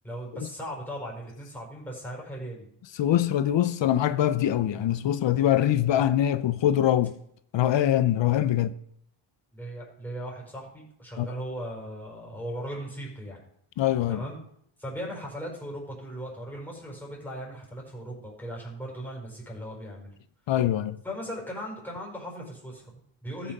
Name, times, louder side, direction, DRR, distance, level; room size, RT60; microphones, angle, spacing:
voice 1, 0.0-2.7 9.5-13.4 14.1-14.4 14.8-20.1 21.0-23.5, equal, 5° left, 5.3 m, -38 dB
voice 2, 2.9-7.1 7.5-8.7 11.2-11.3 13.8-14.2 20.5-21.0, left 11 dB, 60° left, 0.7 m, -23 dB
13.5 x 6.2 x 5.4 m
cardioid pair, 90°, 50 cm